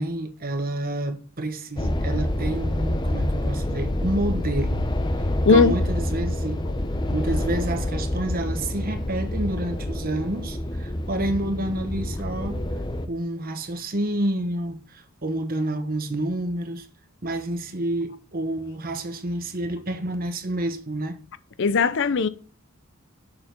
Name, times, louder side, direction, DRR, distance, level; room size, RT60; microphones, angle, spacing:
voice 1, 0.0-4.9 5.5-6.6 7.1-12.6 13.1-16.9 17.2-21.2, right 1 dB, 45° right, 1.2 m, -29 dB
sound 1, 1.8-13.1, left 1 dB, 20° left, 0.8 m, -27 dB
voice 2, 21.6-22.3, left 4 dB, 60° left, 0.6 m, -18 dB
6.9 x 6.9 x 5.2 m
head